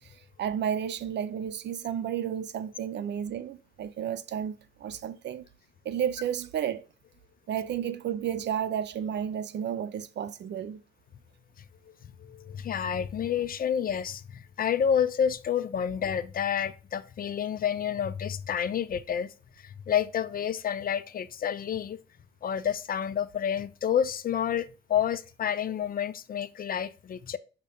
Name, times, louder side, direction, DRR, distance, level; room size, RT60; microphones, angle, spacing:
voice 1, 0.4-4.5 4.8-5.4 5.8-6.9 7.5-10.8, right 9 dB, 60° right, 0.6 m, -32 dB
voice 2, 11.9-22.0 22.4-27.4, left 8 dB, 45° left, 0.5 m, -29 dB
6.4 x 2.9 x 5.0 m
cardioid pair, 90°, 20 cm